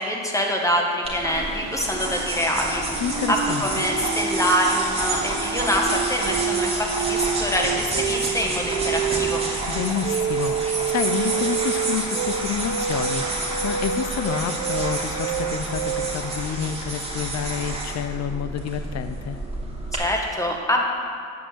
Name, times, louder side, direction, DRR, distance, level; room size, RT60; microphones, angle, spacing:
voice 1, 0.0-2.8 3.3-9.4 19.9-20.8, equal, 10° left, 0 dB, 1.6 m, -25 dB
sound 1, 1.1-20.0, right 2 dB, 20° right, 2.7 m, -29 dB
Toilet flush, 1.3-6.5, right 4 dB, 60° right, 1.4 m, -39 dB
sound 2, 2.9-16.1, right 8 dB, 85° right, 1.0 m, -28 dB
voice 2, 3.0-3.6 9.7-19.4, left 8 dB, 60° left, 10 dB, 0.6 m, -29 dB
8.8 x 6.3 x 7.9 m, 2.2 s
cardioid pair, 90°, 30 cm